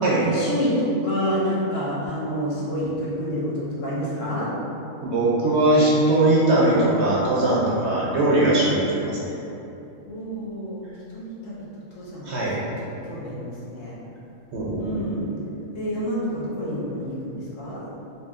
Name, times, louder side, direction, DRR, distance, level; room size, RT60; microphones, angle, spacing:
voice 1, 0.1-4.5 10.1-11.7 11.9-14.0 14.8-15.3 15.7-17.9, equal, 65° left, -7 dB, 1.2 m, -28 dB
voice 2, 5.0-9.4 12.2-12.6 14.5-14.8, right 1 dB, 55° right, -6 dB, 0.9 m, -20 dB
4.3 x 2.8 x 3.6 m, 2.9 s
omnidirectional pair, 1.5 m